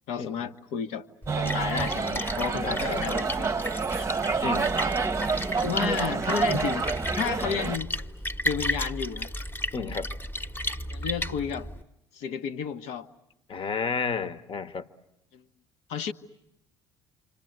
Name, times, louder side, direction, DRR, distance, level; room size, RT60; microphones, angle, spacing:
voice 1, 0.1-1.1 1.4-3.7 3.9-4.1 5.6-6.9 7.1-7.9 8.4-9.3 10.9-11.7 12.1-13.1 15.3-15.4 15.9-16.1, left 7 dB, 60° left, 10 dB, 1.1 m, -32 dB
Splash splatter, 1.2-11.8, left 1 dB, 15° left, 1.2 m, -34 dB
sound 1, 1.3-7.8, right 4 dB, 20° right, 0.9 m, -28 dB
voice 2, 2.6-3.1 4.4-4.7 9.7-10.1 13.5-14.9, left 5 dB, 40° left, 13 dB, 1.3 m, -31 dB
28.0 x 26.5 x 7.9 m, 0.87 s
figure-of-eight pair, 55°, 13 cm